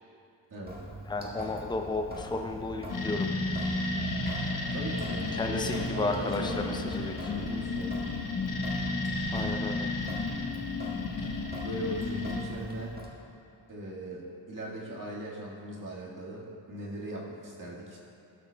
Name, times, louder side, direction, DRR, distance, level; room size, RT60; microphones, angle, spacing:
voice 1, 0.5-0.8 4.7-8.1 11.2-11.3 11.6-13.0 13.7-18.0, right 1 dB, 40° right, -5 dB, 1.8 m, -39 dB
Sink (filling or washing) / Drip, 0.6-13.1, equal, 20° right, 1.7 m, -43 dB
voice 2, 1.1-3.3 5.3-7.1 9.3-9.9, left 2 dB, 10° left, 4 dB, 0.6 m, -33 dB
Musical instrument, 1.5-11.7, left 5 dB, 65° left, 0.7 m, -50 dB
sound 1, 2.9-12.5, left 3 dB, 45° left, 1.0 m, -32 dB
13.5 x 5.9 x 2.3 m, 2.6 s
supercardioid pair, 50°, 47 cm